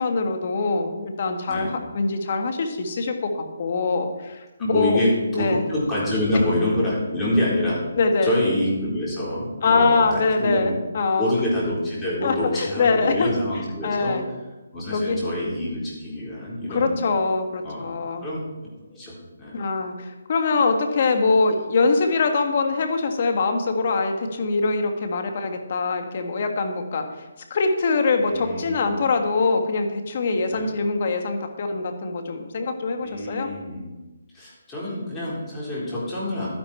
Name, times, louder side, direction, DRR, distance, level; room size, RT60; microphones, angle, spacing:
voice 1, 0.0-5.0 5.3-5.6 8.0-8.3 9.6-11.3 12.2-13.3 13.8-14.3 14.9-15.2 16.7-18.3 19.5-27.1 27.5-33.5, left 4 dB, 45° left, 5 dB, 1.7 m, -23 dB
voice 2, 4.6-7.8 8.2-10.8 11.2-14.2 14.7-17.0 17.6-17.9 18.2-18.4 18.9-19.1 19.4-19.6 28.2-29.1 30.5-30.7 33.0-33.9 34.3-36.5, left 1 dB, 10° left, -7 dB, 4.1 m, -26 dB
12.0 x 10.5 x 4.4 m, 1.1 s
hypercardioid pair, 155°, 0 cm